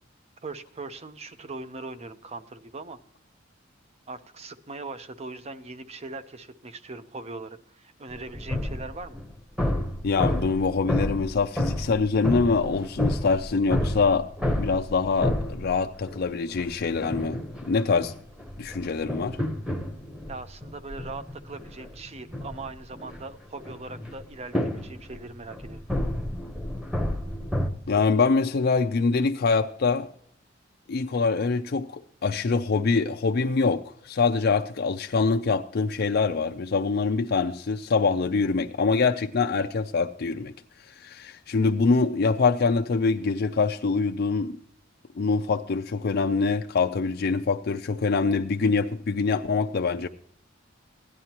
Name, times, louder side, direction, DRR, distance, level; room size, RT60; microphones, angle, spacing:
voice 1, 0.4-3.0 4.1-9.2 20.3-25.8, right 3 dB, 35° right, 0.7 m, -40 dB
sound 1, 8.1-16.2 16.6-27.7, left 1 dB, 5° right, 1.1 m, -31 dB
voice 2, 10.0-14.3 14.5-18.1 18.6-19.4 27.9-30.1 30.9-40.5 40.9-44.6 45.2-50.1, left 4 dB, 55° left, 0.5 m, -24 dB
16.0 x 11.0 x 2.9 m
head